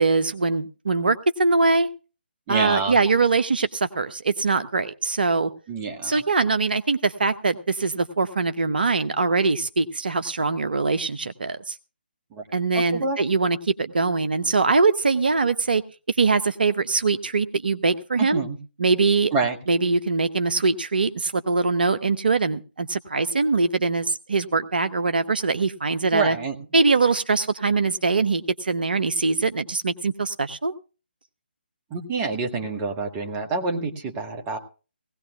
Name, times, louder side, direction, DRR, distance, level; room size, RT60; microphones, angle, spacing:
voice 1, 0.0-1.9 2.5-5.5 6.0-11.8 12.5-15.8 16.1-18.4 18.8-19.3 19.7-26.4 26.7-30.7, right 3 dB, 60° right, 11 dB, 0.8 m, -22 dB
voice 2, 2.5-2.9 5.7-6.2 12.3-12.4 12.7-13.2 18.2-18.6 19.3-19.6 26.1-26.6 31.9-34.6, right 4 dB, 20° right, 5 dB, 1.5 m, -27 dB
19.0 x 17.0 x 2.3 m, 0.35 s
figure-of-eight pair, 145°, 6 cm